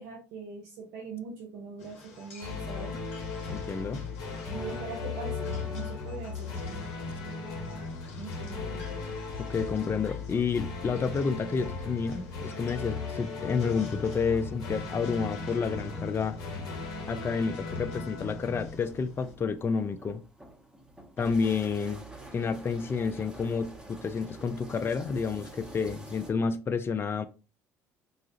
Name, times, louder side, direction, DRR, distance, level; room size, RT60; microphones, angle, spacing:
voice 1, 0.0-3.0 3.9-4.0 4.5-6.8 8.2-9.0, right 5 dB, 70° right, 0.8 m, -41 dB
sound 1, 1.8-19.3, left 3 dB, 85° left, 1.2 m, -51 dB
sound 2, 2.4-19.4, left 4 dB, 60° left, 1.1 m, -37 dB
voice 2, 3.5-4.1 9.5-16.4 17.1-20.2 21.2-22.0 22.3-27.2, left 5 dB, 30° left, 0.4 m, -30 dB
sound 3, 18.6-26.3, right 2 dB, 10° right, 1.1 m, -47 dB
3.9 x 2.4 x 2.7 m
hypercardioid pair, 65°, 8 cm